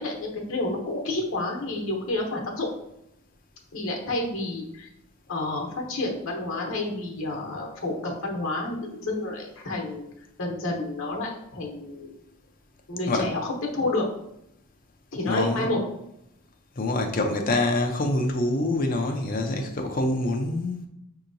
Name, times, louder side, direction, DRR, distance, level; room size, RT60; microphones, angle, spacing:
voice 1, 0.0-2.7 3.7-4.9 5.3-10.1 10.4-12.1 12.9-14.1 15.1-15.8, left 2 dB, 75° left, 1 dB, 0.9 m, -29 dB
voice 2, 15.3-15.7 16.8-20.9, left 2 dB, 40° left, 3 dB, 0.5 m, -25 dB
5.4 x 2.9 x 2.6 m, 0.81 s
head